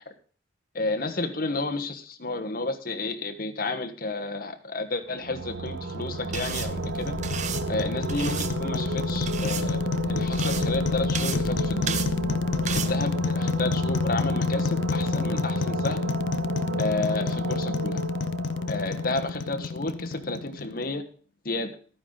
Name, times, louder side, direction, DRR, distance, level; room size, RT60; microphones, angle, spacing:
voice 1, 0.7-7.1 7.7-11.9 12.7-16.0 16.8-18.0 18.7-21.0 21.4-21.7, left 2 dB, 50° left, 5 dB, 1.3 m, -31 dB
sound 1, 5.0-20.6, right 4 dB, 80° right, 0.5 m, -34 dB
sound 2, 5.7-20.8, left 4 dB, 75° left, 0.4 m, -29 dB
sound 3, 6.3-12.9, right 6 dB, 40° right, 0.8 m, -35 dB
12.5 x 9.5 x 3.9 m, 0.41 s
head